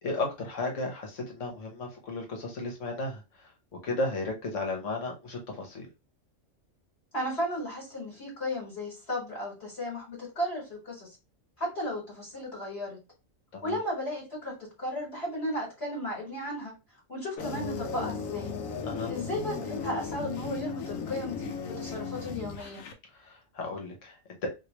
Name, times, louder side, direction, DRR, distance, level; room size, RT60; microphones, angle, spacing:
voice 1, 0.0-3.5 3.8-5.9 13.5-13.8 18.8-19.1 23.1-24.5, left 2 dB, 70° left, 2 dB, 1.4 m, -34 dB
voice 2, 7.1-11.2 11.6-13.0 13.6-16.7 17.1-18.5 19.1-21.5 21.8-22.8, equal, 55° left, -3 dB, 1.7 m, -34 dB
sound 1, 17.4-22.9, left 5 dB, 90° left, 1.0 m, -36 dB
3.1 x 2.8 x 2.9 m, 0.27 s
omnidirectional pair, 1.3 m